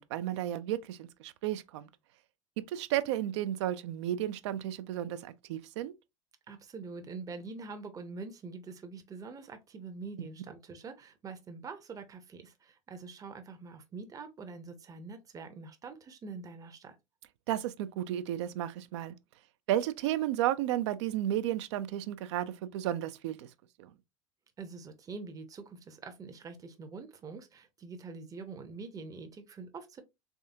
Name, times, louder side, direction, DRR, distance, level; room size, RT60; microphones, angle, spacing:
voice 1, 0.0-1.9 2.7-5.9 17.5-19.1 19.7-23.5 23.8-23.9, right 12 dB, 60° right, 0.4 m, -33 dB
voice 2, 6.5-17.0 24.6-30.0, right 4 dB, 20° right, 0.7 m, -45 dB
3.6 x 3.4 x 2.6 m
figure-of-eight pair, 75°, 17 cm